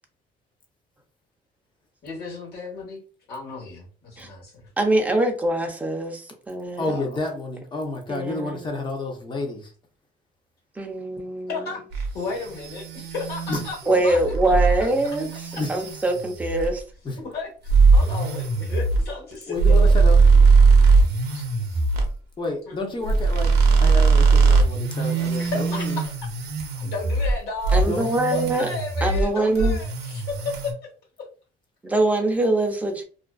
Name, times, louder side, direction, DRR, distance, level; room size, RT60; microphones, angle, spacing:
voice 1, 2.0-3.0 3.3-4.7 6.9-7.0 11.5-14.2 17.2-19.5 21.3-21.8 22.7-22.9 25.1-26.0 26.7-27.8 28.3-30.7, left 4 dB, 70° left, -2 dB, 1.2 m, -34 dB
voice 2, 4.8-6.9 8.1-8.6 10.8-11.8 13.9-16.8 27.7-28.7 29.0-29.8 31.8-33.0, right 2 dB, 10° right, 2 dB, 0.5 m, -23 dB
voice 3, 6.8-9.7 13.5-13.6 15.6-15.7 17.0-17.2 19.5-20.2 22.4-23.5 23.8-26.0 27.9-28.1, left 3 dB, 30° left, 2 dB, 0.8 m, -30 dB
mini whisk fx, 11.9-16.8 17.7-22.1 23.0-27.4 27.6-29.3 29.6-30.7, right 4 dB, 75° right, 0.6 m, -20 dB
2.4 x 2.3 x 2.2 m, 0.38 s
cardioid pair, 110°, 17 cm